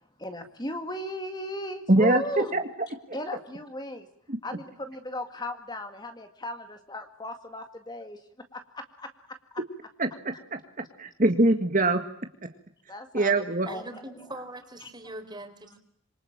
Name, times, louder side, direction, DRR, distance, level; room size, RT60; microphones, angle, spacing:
voice 1, 0.2-2.5 3.1-4.1 4.4-8.2 8.5-9.6 12.9-14.3 14.8-14.9, left 1 dB, 20° left, 7 dB, 2.0 m, -37 dB
voice 2, 1.9-2.6 3.1-3.2 4.3-4.4 10.0-10.6 11.0-12.0 13.1-13.7, right 2 dB, 35° right, 6 dB, 1.9 m, -23 dB
voice 3, 13.6-15.8, right 1 dB, 20° right, 7 dB, 4.3 m, -41 dB
27.0 x 25.5 x 8.8 m, 0.68 s
head